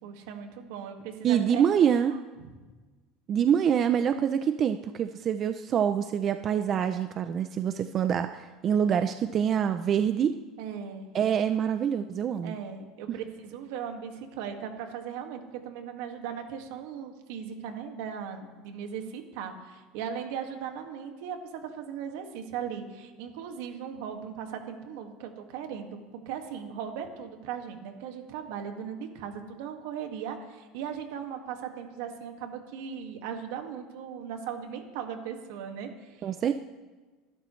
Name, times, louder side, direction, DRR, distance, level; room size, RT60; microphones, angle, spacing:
voice 1, 0.0-1.7 2.1-2.2 2.4-2.6 8.7-8.9 10.6-11.1 12.4-36.3, right 7 dB, 75° right, 4 dB, 1.9 m, -38 dB
voice 2, 1.2-2.1 3.3-10.3 11.1-12.5 36.2-36.5, right 8 dB, 30° right, 9 dB, 0.5 m, -25 dB
26.5 x 12.0 x 3.2 m, 1.3 s
cardioid pair, 150°, 0 cm